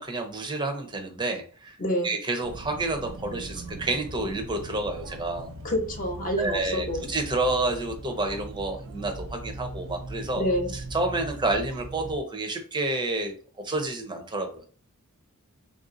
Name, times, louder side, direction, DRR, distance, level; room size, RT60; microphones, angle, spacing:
voice 1, 0.0-1.7 2.0-5.5 6.4-10.5 10.9-13.3 13.6-14.5, right 2 dB, 20° right, 3 dB, 0.7 m, -29 dB
voice 2, 1.8-2.1 5.6-7.1 10.3-10.7, equal, 40° left, 2 dB, 0.9 m, -27 dB
sound 1, 2.4-12.2, right 2 dB, 60° right, 0.5 m, -40 dB
3.5 x 2.6 x 3.8 m, 0.42 s
head